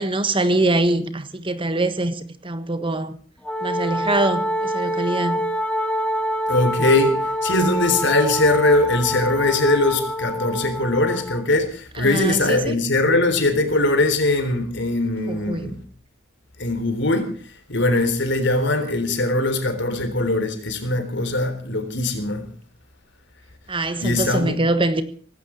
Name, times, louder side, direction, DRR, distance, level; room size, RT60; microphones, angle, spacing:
voice 1, 0.0-3.2 3.6-5.4 11.9-12.8 15.3-15.7 23.7-25.0, right 2 dB, 25° right, 1.4 m, -23 dB
Wind instrument woodwind instrument, 3.4-11.4, equal, 5° left, 2.0 m, -26 dB
voice 2, 6.5-15.8 16.6-17.3 17.7-22.5 24.0-24.6, left 2 dB, 60° left, 3.7 m, -21 dB
18.5 x 16.5 x 4.5 m
head